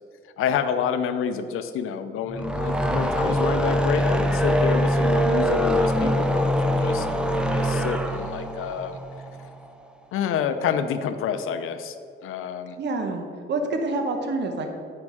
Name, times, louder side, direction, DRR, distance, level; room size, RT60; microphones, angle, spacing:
voice 1, 0.4-7.1 7.4-9.0 10.1-12.0 12.2-12.8, left 7 dB, 85° left, 9 dB, 0.6 m, -28 dB
sound 1, 2.3-9.7, equal, 5° right, 0.6 m, -23 dB
voice 2, 12.8-14.8, right 2 dB, 55° right, 4 dB, 1.0 m, -27 dB
9.6 x 5.2 x 4.8 m, 2.3 s
cardioid pair, 100°, 21 cm